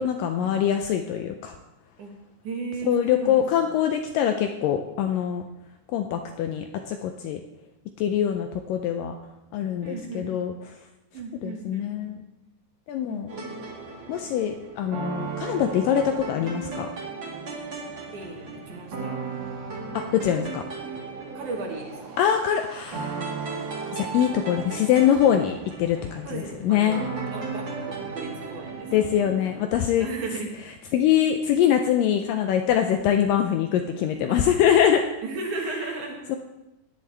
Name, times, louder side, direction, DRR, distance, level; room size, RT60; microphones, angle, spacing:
voice 1, 0.0-1.5 2.9-5.4 5.9-7.4 8.0-9.1 9.5-10.5 11.4-12.2 12.9-13.3 14.1-16.9 19.9-20.6 22.2-23.2 23.9-27.0 28.9-30.1 30.9-35.0 36.3-36.4, left 9 dB, 80° left, 5 dB, 2.0 m, -23 dB
voice 2, 2.4-3.7 9.8-10.5 11.1-12.1 13.1-13.5 18.1-19.2 21.3-22.2 26.2-29.1 30.0-30.5 34.3-34.4 35.2-36.4, right 3 dB, 60° right, 0 dB, 2.7 m, -36 dB
sound 1, 13.3-29.6, right 4 dB, 35° right, 2.4 m, -35 dB
18.0 x 10.0 x 3.3 m, 0.96 s
omnidirectional pair, 4.5 m